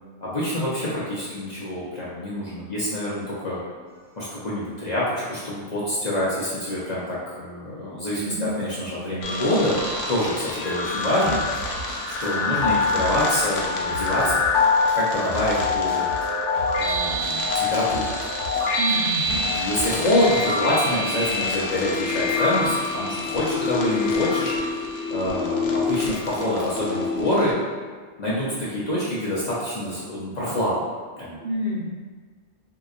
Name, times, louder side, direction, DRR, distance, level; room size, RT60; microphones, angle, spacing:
voice 1, 0.2-3.6 4.2-9.8 10.1-11.4 12.2-14.4 14.9-16.1 16.8-18.0 19.5-27.5 28.2-30.7 31.2-31.4, left 1 dB, 45° left, -8 dB, 0.7 m, -26 dB
sound 1, 3.9-4.2 11.2-13.6 13.9-20.3, right 2 dB, 80° right, 1.3 m, -38 dB
voice 2, 8.2-8.5 18.8-19.4 31.4-31.8, left 1 dB, 65° right, -5 dB, 1.0 m, -28 dB
sound 2, 9.2-27.5, left 3 dB, 80° left, 0.9 m, -25 dB
3.8 x 2.8 x 2.4 m, 1.5 s
omnidirectional pair, 1.3 m